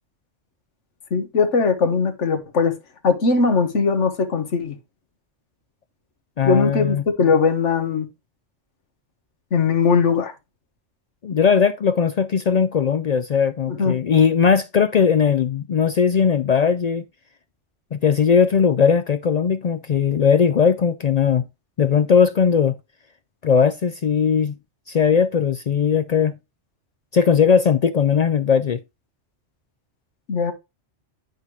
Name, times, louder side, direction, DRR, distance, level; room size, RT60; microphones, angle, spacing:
voice 1, 1.1-2.7 3.0-4.7 6.4-8.1 9.5-10.3 13.7-13.9 30.3-30.5, left 5 dB, 90° left, 1.5 m, -19 dB
voice 2, 6.4-7.0 11.2-17.0 17.9-21.4 21.8-22.8 23.4-24.6 24.9-26.3 27.1-28.8, left 6 dB, 65° left, 0.4 m, -18 dB
9.7 x 4.3 x 3.1 m
omnidirectional pair, 1.2 m